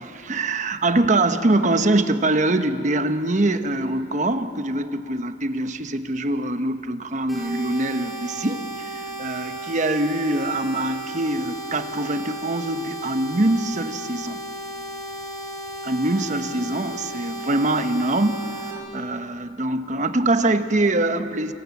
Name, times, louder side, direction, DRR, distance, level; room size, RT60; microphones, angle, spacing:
voice 1, 0.0-14.4 15.8-21.5, right 2 dB, 45° right, 9 dB, 1.1 m, -23 dB
sound 1, 7.3-18.7, right 1 dB, ahead, 5.6 m, -34 dB
28.0 x 26.5 x 7.2 m, 2.8 s
head